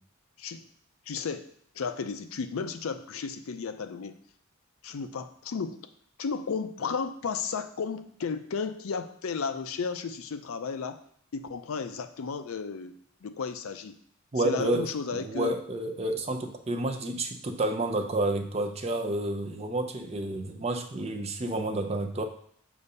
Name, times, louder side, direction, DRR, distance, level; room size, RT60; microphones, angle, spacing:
voice 1, 1.1-1.5 1.7-4.2 4.8-5.8 6.2-11.0 11.3-14.0 14.4-15.6 16.3-16.4, left 5 dB, 75° left, 10 dB, 0.5 m, -34 dB
voice 2, 14.3-14.9 15.1-22.2, right 2 dB, 30° right, 5 dB, 0.5 m, -30 dB
6.7 x 2.6 x 5.4 m, 0.64 s
head